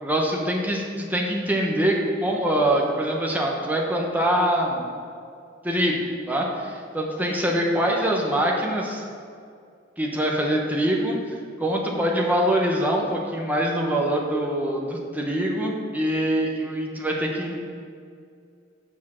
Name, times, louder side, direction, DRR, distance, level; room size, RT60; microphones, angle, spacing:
voice 1, 0.0-4.9 5.6-9.0 10.0-11.2 11.6-17.6, right 1 dB, 10° right, -1 dB, 1.0 m, -24 dB
7.1 x 6.0 x 6.4 m, 2.3 s
head